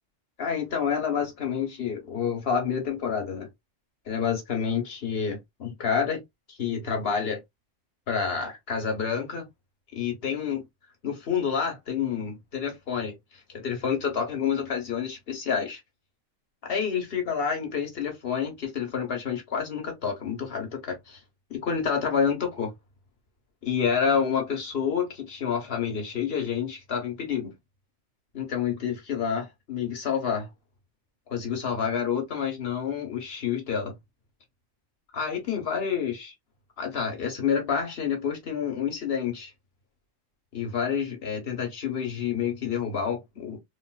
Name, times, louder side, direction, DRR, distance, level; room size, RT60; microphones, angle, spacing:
voice 1, 0.4-3.5 4.1-6.2 6.5-7.4 8.1-9.5 9.9-10.7 11.0-13.1 13.5-15.8 16.6-21.2 21.5-22.7 23.6-27.5 28.3-30.5 31.3-34.0 35.1-36.3 36.8-39.5 40.5-43.6, left 7 dB, 50° left, 1.3 m, -28 dB
3.7 x 2.3 x 2.3 m
omnidirectional pair, 1.4 m